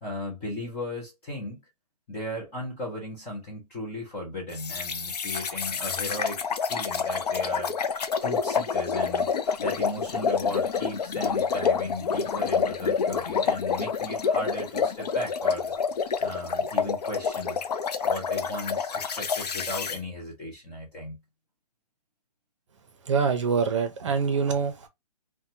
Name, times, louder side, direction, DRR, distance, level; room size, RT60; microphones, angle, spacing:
voice 1, 0.0-1.6 2.1-7.7 8.2-9.3 9.6-15.7 16.2-17.6 18.0-21.2, left 1 dB, 10° left, 0.5 m, -36 dB
sound 1, 4.6-20.0, left 6 dB, 80° left, 0.5 m, -28 dB
voice 2, 23.0-24.9, right 5 dB, 50° right, 0.7 m, -25 dB
2.7 x 2.2 x 2.7 m
hypercardioid pair, 165°, 20 cm